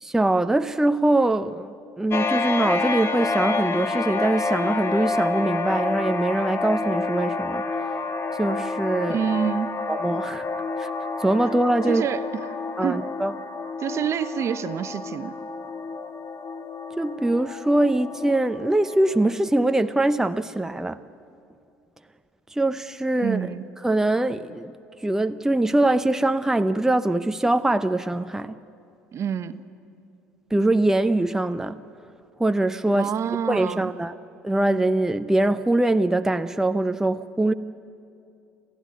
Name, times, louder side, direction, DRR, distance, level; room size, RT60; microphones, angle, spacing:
voice 1, 0.0-7.9 8.3-9.2 9.9-10.5 10.8-10.9 11.2-12.1 12.8-13.3 17.0-21.0 22.5-23.5 23.8-24.7 25.0-28.6 30.5-31.8 32.4-33.1 33.5-34.2 34.4-37.5, right 2 dB, 5° right, 9 dB, 0.7 m, -23 dB
sound 1, 2.1-19.3, left 3 dB, 40° left, 1.5 m, -29 dB
voice 2, 9.1-9.8 11.9-12.6 12.8-13.1 13.8-15.3 23.2-23.7 29.1-29.6 32.9-33.9, right 8 dB, 45° right, 12 dB, 1.0 m, -27 dB
27.5 x 15.0 x 9.6 m, 2.5 s
hypercardioid pair, 60°, 7 cm